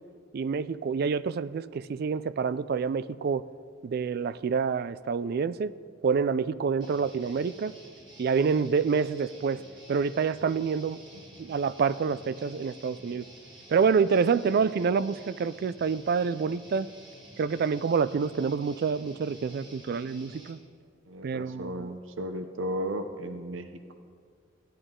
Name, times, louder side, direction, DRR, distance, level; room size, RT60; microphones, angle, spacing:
voice 1, 0.3-3.4 3.8-5.7 6.0-7.7 8.2-9.6 9.9-11.0 11.4-13.3 13.7-16.9 17.4-20.6 21.2-21.9, right 5 dB, 50° right, 16 dB, 0.3 m, -27 dB
Guitar, 6.8-20.5, right 1 dB, 25° right, 1.9 m, -51 dB
voice 2, 21.1-23.7, equal, 80° right, 8 dB, 0.7 m, -34 dB
16.0 x 10.0 x 3.7 m, 2.1 s
head